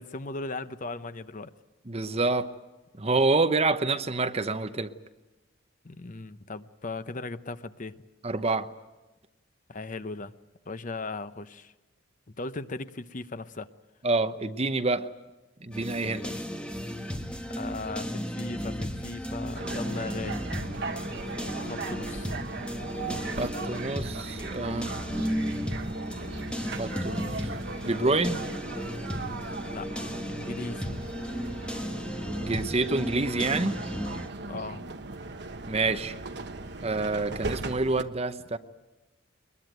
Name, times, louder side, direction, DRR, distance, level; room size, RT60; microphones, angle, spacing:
voice 1, 0.0-1.5 5.8-8.0 9.7-10.3 10.7-11.7 12.4-13.7 16.2-16.4 17.6-20.4 21.5-22.3 29.7-30.9 34.5-34.9, left 3 dB, 40° left, 12 dB, 0.7 m, -37 dB
voice 2, 1.9-2.5 2.9-4.9 8.2-8.7 14.0-15.1 15.6-16.3 23.4-25.0 26.8-27.5 27.8-28.4 32.4-33.8 35.7-36.1 36.8-38.6, right 3 dB, 30° right, 10 dB, 0.9 m, -27 dB
sound 1, 15.7-34.3, equal, 5° left, 1.5 m, -35 dB
sound 2, 19.6-38.0, right 3 dB, 55° right, 1.2 m, -38 dB
22.5 x 21.0 x 9.2 m, 1.1 s
head